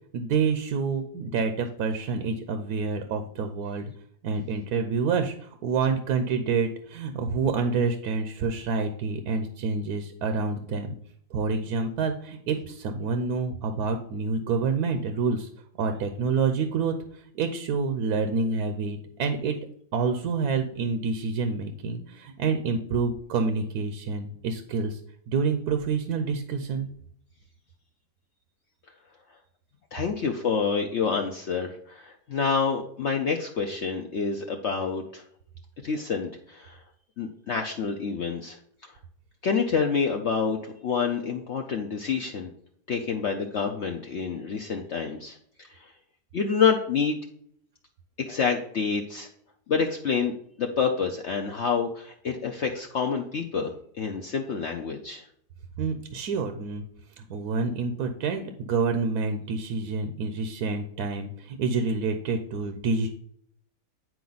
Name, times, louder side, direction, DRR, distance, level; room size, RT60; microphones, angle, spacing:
voice 1, 0.1-3.9 4.2-11.0 11.3-15.5 15.8-19.6 19.9-25.0 25.3-26.9 55.8-56.8 57.2-63.1, right 4 dB, 75° right, 7 dB, 1.1 m, -28 dB
voice 2, 29.9-35.2 35.8-36.8 37.2-39.0 39.4-42.5 42.9-45.9 46.3-47.2 48.2-49.3 49.7-50.3 50.6-55.3, left 5 dB, 60° left, 2 dB, 0.7 m, -28 dB
9.3 x 4.6 x 4.0 m, 0.66 s
omnidirectional pair, 1.8 m